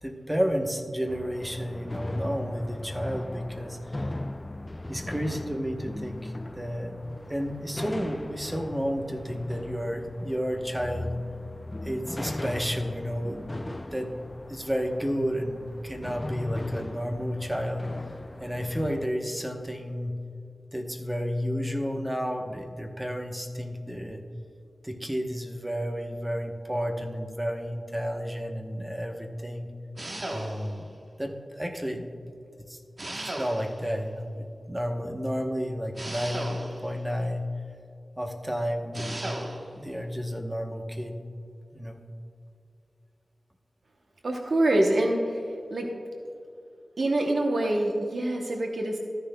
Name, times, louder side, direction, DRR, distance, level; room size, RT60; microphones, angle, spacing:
voice 1, 0.0-4.1 4.9-7.0 7.3-11.2 11.8-13.5 13.9-14.1 14.5-17.9 18.4-20.1 20.7-24.2 24.8-29.7 30.3-30.9 31.2-32.1 32.6-32.8 33.1-37.4 38.2-39.4 39.7-41.2 41.7-42.0, equal, 10° right, 2 dB, 0.9 m, -31 dB
sound 1, 1.1-19.1, left 1 dB, 20° left, 0.4 m, -38 dB
sound 2, 30.0-30.9 33.0-33.9 35.9-37.0 38.9-39.7, right 1 dB, 40° right, 1.0 m, -36 dB
voice 2, 44.2-45.4 45.7-45.9 47.0-49.0, right 1 dB, 70° right, 1 dB, 0.8 m, -25 dB
13.5 x 10.0 x 2.2 m, 2.5 s
wide cardioid pair, 95°, 0 cm